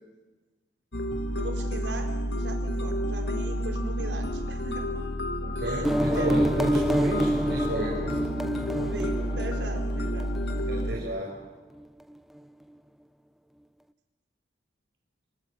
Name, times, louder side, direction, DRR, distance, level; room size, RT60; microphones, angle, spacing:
sound 1, 0.9-11.0, equal, 70° left, 2.4 m, -30 dB
voice 1, 1.4-4.8 5.6-6.4 8.8-10.3, right 1 dB, 85° right, 3 dB, 4.7 m, -38 dB
voice 2, 5.4-8.2 10.7-11.4, right 1 dB, 70° right, -2 dB, 5.8 m, -33 dB
sound 2, 5.8-11.2, right 1 dB, ahead, 0.8 m, -28 dB
27.5 x 27.5 x 7.4 m, 1.2 s
head